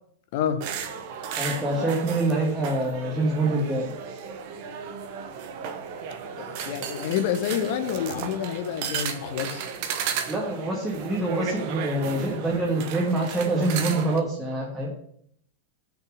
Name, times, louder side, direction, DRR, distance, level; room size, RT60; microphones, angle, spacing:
sound 1, 0.6-14.2, right 7 dB, 45° right, 1.0 m, -34 dB
voice 1, 1.4-3.9 10.3-14.9, right 2 dB, 10° right, -4 dB, 1.8 m, -25 dB
voice 2, 6.4-9.7, left 9 dB, 50° left, 9 dB, 1.0 m, -28 dB
6.4 x 5.6 x 6.4 m, 0.68 s
figure-of-eight pair, 90°, 0 cm